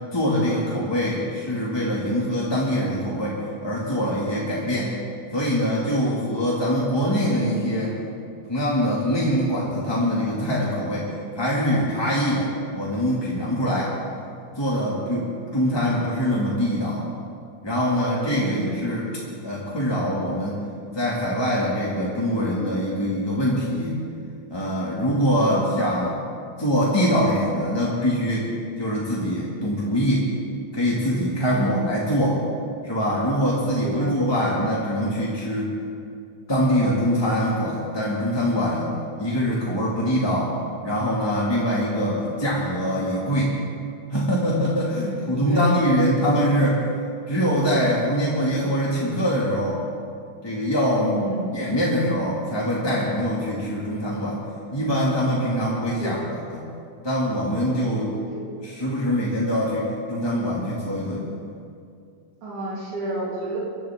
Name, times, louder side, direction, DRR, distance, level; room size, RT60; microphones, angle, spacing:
voice 1, 0.1-4.9 5.3-8.0 8.5-11.1 11.3-14.0 14.5-17.0 17.6-19.1 19.4-20.6 20.9-23.9 24.5-26.2 26.6-28.5 28.8-30.3 30.7-32.4 32.8-35.7 36.5-38.9 39.2-40.5 40.8-43.7 44.1-46.8 47.3-49.8 50.4-51.3 51.5-54.4 54.7-56.6 57.0-58.2 58.6-61.3, equal, 10° left, -6 dB, 1.3 m, -23 dB
voice 2, 18.4-18.8 25.5-25.8 31.5-31.9 33.8-34.3 41.9-42.2 45.0-45.8 51.2-51.6 56.0-56.2 58.3-58.5 62.4-63.6, right 1 dB, 80° right, -7 dB, 3.8 m, -31 dB
25.0 x 12.0 x 3.6 m, 2.4 s
omnidirectional pair, 3.5 m